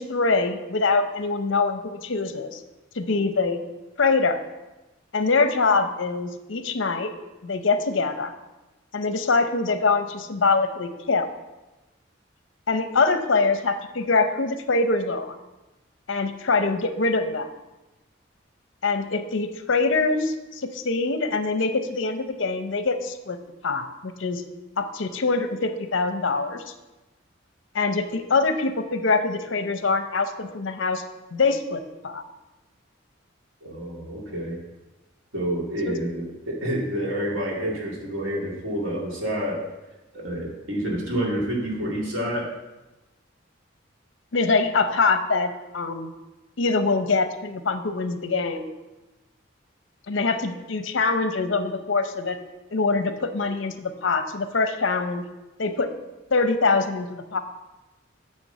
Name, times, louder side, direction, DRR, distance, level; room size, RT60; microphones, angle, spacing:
voice 1, 0.0-2.6 2.9-3.6 4.0-4.4 5.1-7.1 7.4-8.3 8.9-11.3 12.7-15.3 16.1-17.5 18.8-24.4 24.8-26.7 27.7-31.0 31.3-32.2 35.9-36.0 44.3-46.1 46.6-48.7 50.1-52.4 52.7-55.2 55.6-55.9 56.3-57.4, left 3 dB, 75° left, 9 dB, 0.7 m, -24 dB
voice 2, 33.6-34.6 35.3-39.6 40.1-42.5, right 1 dB, 85° right, -3 dB, 2.2 m, -28 dB
9.1 x 3.6 x 6.6 m, 1.1 s
head